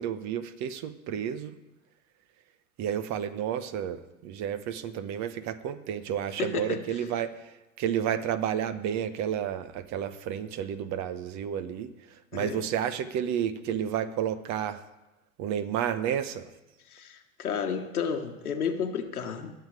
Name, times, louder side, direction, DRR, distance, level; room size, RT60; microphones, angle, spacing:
voice 1, 0.0-1.5 2.8-11.9 12.3-14.8 15.4-16.5, right 9 dB, 40° right, 14 dB, 1.0 m, -31 dB
voice 2, 6.4-6.8 12.3-12.6 16.9-19.5, left 6 dB, 90° left, 3 dB, 1.3 m, -32 dB
19.5 x 7.0 x 4.9 m, 1.0 s
hypercardioid pair, 95°, 43 cm